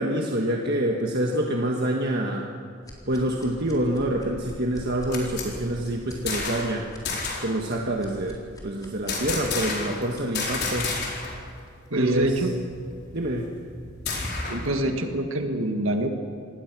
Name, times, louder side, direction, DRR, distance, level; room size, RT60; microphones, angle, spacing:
voice 1, 0.0-2.5 3.1-6.9 7.4-11.0 11.9-12.4 13.1-13.6, right 1 dB, 50° right, 0 dB, 1.6 m, -26 dB
sound 1, 2.8-10.6, equal, 20° left, 4.1 m, -44 dB
sound 2, 4.8-6.8 7.0-7.5 9.1-10.0 10.3-11.4 11.7-11.8 12.1-14.7, left 3 dB, 55° left, 4.6 m, -31 dB
voice 2, 11.9-12.5 14.5-16.1, right 1 dB, 80° right, 4 dB, 1.8 m, -25 dB
26.5 x 19.5 x 6.2 m, 2.3 s
head